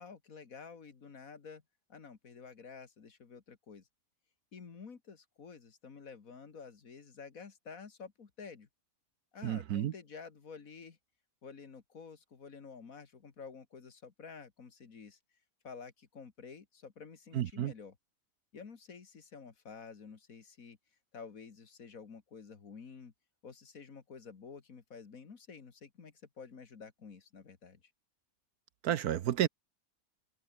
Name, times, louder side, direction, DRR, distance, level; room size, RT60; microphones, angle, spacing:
voice 1, 0.0-1.6 1.9-3.9 4.5-8.7 9.3-11.0 11.4-15.2 15.6-18.0 18.5-20.8 21.1-23.1 23.4-27.8, left 5 dB, 55° left, 2.2 m, -50 dB
voice 2, 9.4-9.9 17.3-17.7 28.8-29.5, right 11 dB, 70° right, 1.3 m, -31 dB
omnidirectional pair, 1.7 m